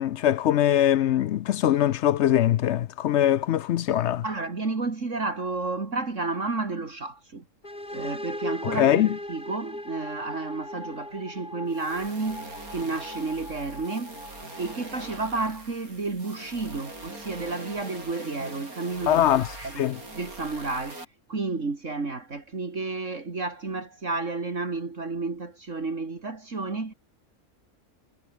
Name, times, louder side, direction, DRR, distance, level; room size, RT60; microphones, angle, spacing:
voice 1, 0.0-4.2 8.8-9.1 19.1-19.5 19.8-20.0, left 11 dB, 65° left, 0.7 m, -22 dB
voice 2, 4.2-7.4 7.9-19.3 19.6-19.9 20.1-21.0 21.3-26.9, right 3 dB, 60° right, 3.1 m, -31 dB
sound 1, 7.6-15.3, left 1 dB, 30° left, 8.1 m, -39 dB
sound 2, 11.7-21.0, right 2 dB, 80° right, 7.6 m, -42 dB
omnidirectional pair, 1.5 m